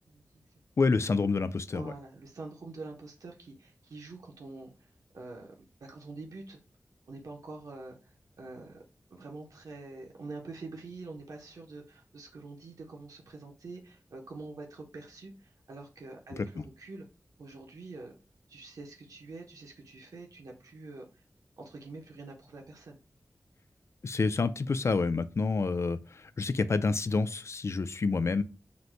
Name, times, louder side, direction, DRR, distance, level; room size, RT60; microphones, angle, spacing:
voice 1, 0.8-1.9 16.6-16.7 24.0-28.4, left 4 dB, 55° left, 0.4 m, -28 dB
voice 2, 1.7-5.5 5.8-6.6 7.1-8.8 9.1-17.0 17.4-18.1 18.5-21.2 21.6-23.0 28.4-28.5, right 3 dB, 90° right, 0.8 m, -46 dB
3.9 x 2.1 x 4.5 m
wide cardioid pair, 80°, 6 cm